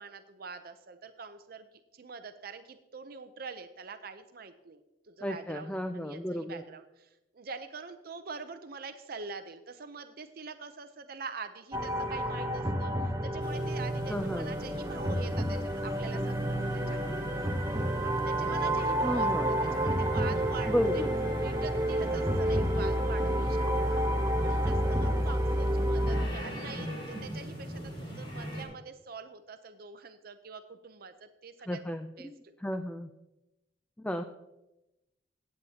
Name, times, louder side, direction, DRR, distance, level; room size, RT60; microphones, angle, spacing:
voice 1, 0.0-1.7 1.9-4.8 5.1-17.3 18.0-21.0 21.4-24.0 24.4-31.8 32.2-32.5, right 5 dB, 55° right, 9 dB, 0.6 m, -45 dB
voice 2, 5.2-6.6 14.1-14.5 19.0-19.6 20.7-21.1 31.7-33.1 34.0-34.2, equal, 5° left, 7 dB, 0.4 m, -33 dB
sound 1, 11.7-26.3, right 1 dB, 20° right, 0.8 m, -29 dB
sound 2, 13.3-28.6, equal, 80° left, 2.6 m, -47 dB
sound 3, 13.4-28.7, equal, 30° left, 4.3 m, -43 dB
16.0 x 8.5 x 2.8 m, 0.96 s
head